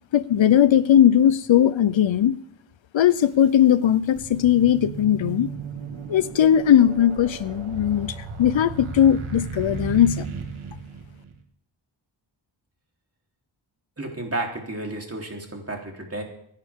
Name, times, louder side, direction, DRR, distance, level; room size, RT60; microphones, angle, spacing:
voice 1, 0.1-2.4 2.9-5.5 6.1-10.3, left 10 dB, 70° left, 16 dB, 0.7 m, -18 dB
sound 1, 3.1-3.2 3.8-11.4, right 5 dB, 90° right, 1.9 m, -35 dB
voice 2, 14.0-16.2, right 2 dB, 30° right, 0 dB, 3.6 m, -32 dB
25.5 x 11.0 x 3.7 m, 0.71 s
wide cardioid pair, 80°, 48 cm